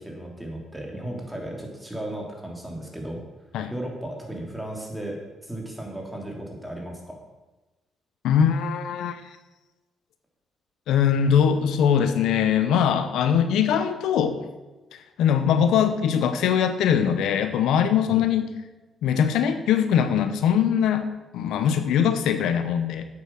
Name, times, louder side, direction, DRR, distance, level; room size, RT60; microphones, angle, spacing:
voice 1, 0.0-3.2 3.7-7.2 18.1-18.2, right 1 dB, 5° right, 0 dB, 3.0 m, -35 dB
voice 2, 8.2-9.2 10.9-14.4 14.9-18.5 19.0-23.1, left 8 dB, 85° left, 10 dB, 0.8 m, -22 dB
8.8 x 7.9 x 6.2 m, 1.1 s
cardioid pair, 90°, 0 cm